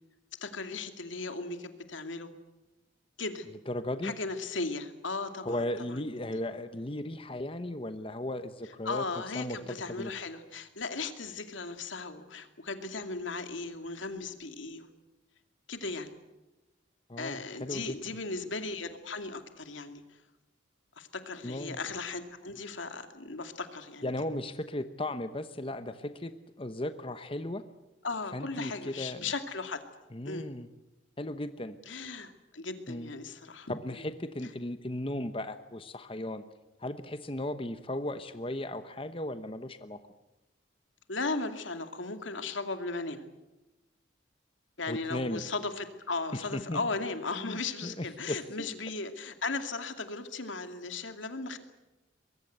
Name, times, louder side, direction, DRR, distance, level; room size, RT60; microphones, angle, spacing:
voice 1, 0.4-2.3 3.2-3.5 4.0-6.1 8.8-14.9 15.7-16.1 17.2-20.2 21.0-24.1 28.0-29.8 30.2-30.5 31.9-34.1 41.1-43.2 44.8-51.6, left 3 dB, 85° left, 7 dB, 2.5 m, -37 dB
voice 2, 3.7-4.1 5.4-9.0 9.3-10.1 17.1-18.0 21.4-21.8 24.0-26.3 26.6-27.6 28.3-29.2 30.1-30.7 31.2-31.8 32.9-33.1 33.7-36.4 36.8-40.0 44.9-45.4 46.5-46.8 47.4-48.4, left 1 dB, 30° left, 10 dB, 1.0 m, -36 dB
24.0 x 22.0 x 8.1 m, 1.0 s
head